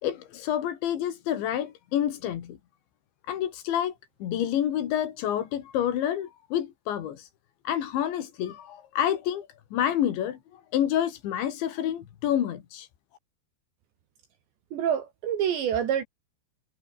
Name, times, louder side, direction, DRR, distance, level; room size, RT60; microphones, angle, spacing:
voice 1, 0.0-2.6 3.3-3.9 4.2-7.3 7.6-12.9, left 10 dB, 70° left, 4.5 m, -28 dB
voice 2, 14.7-16.0, right 9 dB, 70° right, 4.5 m, -27 dB
omnidirectional pair, 5.4 m